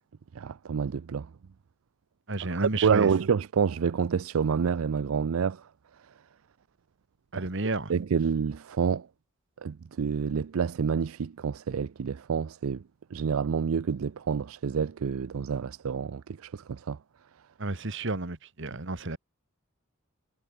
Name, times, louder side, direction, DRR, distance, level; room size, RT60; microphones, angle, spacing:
voice 1, 0.3-1.3 2.4-5.7 7.3-7.5 7.9-9.1 9.6-12.8 13.1-17.0, right 6 dB, 75° right, 0.4 m, -28 dB
voice 2, 2.3-3.1 7.3-7.9 17.6-19.2, right 2 dB, 60° right, 1.6 m, -31 dB
head